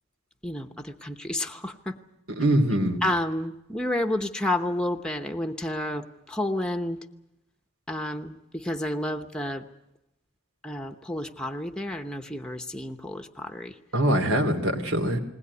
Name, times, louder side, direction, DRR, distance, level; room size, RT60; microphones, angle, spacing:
voice 1, 0.4-2.0 3.0-7.0 7.9-9.7 10.6-13.7, left 1 dB, 5° left, 5 dB, 0.9 m, -30 dB
voice 2, 2.3-3.0 13.9-15.2, right 1 dB, 80° right, 5 dB, 3.0 m, -23 dB
20.5 x 19.5 x 9.6 m, 0.91 s
head